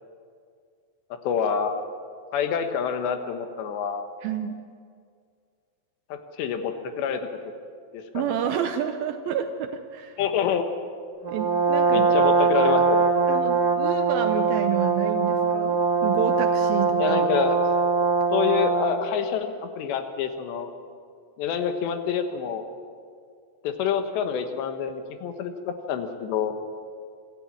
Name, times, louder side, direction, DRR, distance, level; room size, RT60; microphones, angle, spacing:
voice 1, 1.2-1.7 2.3-4.1 6.1-7.3 7.9-8.4 10.2-10.7 11.9-13.1 17.0-17.6 18.3-20.7 21.4-22.6 23.6-26.6, left 7 dB, 85° left, 7 dB, 3.5 m, -27 dB
voice 2, 4.2-4.6 8.1-10.2 11.3-12.1 12.6-12.8 13.3-17.2, right 9 dB, 75° right, 7 dB, 2.3 m, -29 dB
Brass instrument, 11.2-19.0, right 4 dB, 25° right, 2.6 m, -22 dB
25.0 x 13.5 x 8.6 m, 2.2 s
omnidirectional pair, 5.0 m